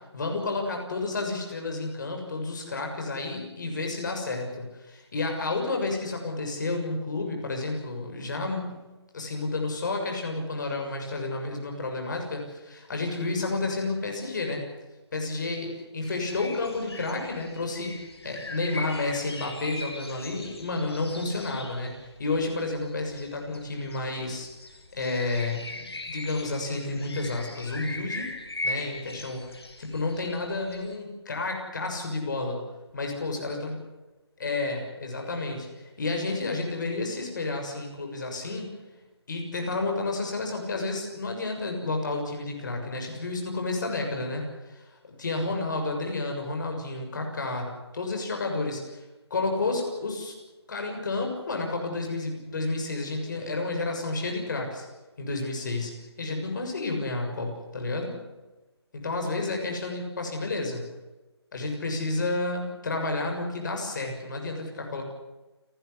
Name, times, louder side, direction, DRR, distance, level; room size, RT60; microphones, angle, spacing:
voice 1, 0.1-8.8 9.1-14.6 15.1-21.9 22.2-24.5 24.9-28.3 28.6-32.6 32.9-33.7 34.4-38.7 39.3-44.8 45.2-49.0 49.3-50.3 50.7-54.9 55.2-58.1 58.9-60.9 61.5-65.0, left 3 dB, 45° left, 3 dB, 6.7 m, -31 dB
sound 1, 16.0-31.0, left 2 dB, 65° left, 5.1 m, -40 dB
29.5 x 12.5 x 9.7 m, 1.1 s
figure-of-eight pair, 160°, 14 cm